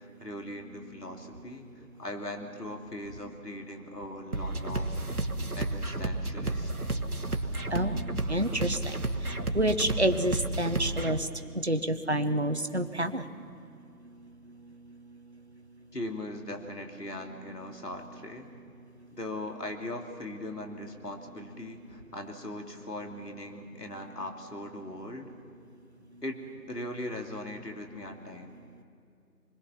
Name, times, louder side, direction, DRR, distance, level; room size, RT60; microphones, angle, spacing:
voice 1, 0.0-4.9 5.5-7.0 15.9-18.5 19.2-25.3 26.2-28.6, left 1 dB, 70° left, 3 dB, 3.0 m, -40 dB
sound 1, 4.3-11.2, right 2 dB, 65° right, 1.3 m, -32 dB
voice 2, 8.3-9.0 9.5-11.3 11.5-13.2, right 1 dB, 40° right, 8 dB, 0.8 m, -28 dB
27.0 x 21.0 x 5.8 m, 2.4 s
figure-of-eight pair, 175°, 48 cm